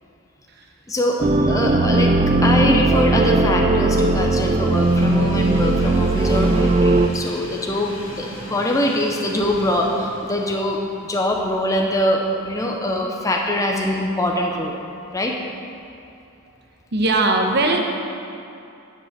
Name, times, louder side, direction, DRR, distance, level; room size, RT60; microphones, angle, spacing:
voice 1, 0.9-14.7 15.1-15.3, left 1 dB, 15° left, 0 dB, 0.6 m, -23 dB
sound 1, 1.2-7.1, right 2 dB, 30° right, 0.3 m, -18 dB
Train, 2.4-12.5 12.9-13.0 14.1-14.2, left 1 dB, 65° left, 1.6 m, -39 dB
voice 2, 16.9-17.8, right 2 dB, 50° right, 2 dB, 1.0 m, -19 dB
10.0 x 5.4 x 6.6 m, 2.7 s
head